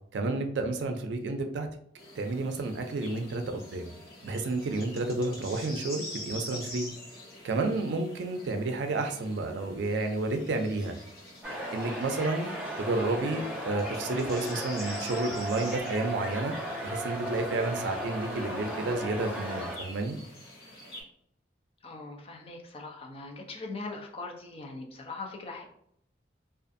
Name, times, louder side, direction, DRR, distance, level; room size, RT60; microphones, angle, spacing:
voice 1, 0.1-1.7 2.2-3.9 4.2-6.9 7.4-11.0 11.7-12.5 12.8-16.5 16.8-20.2, right 2 dB, 85° right, 5 dB, 0.4 m, -31 dB
sound 1, 2.0-21.0, left 1 dB, 60° left, 1.0 m, -46 dB
sound 2, 11.4-19.8, equal, 10° right, 0.8 m, -36 dB
voice 2, 21.8-25.6, left 3 dB, 35° left, 1 dB, 0.5 m, -41 dB
2.5 x 2.4 x 2.5 m, 0.68 s
head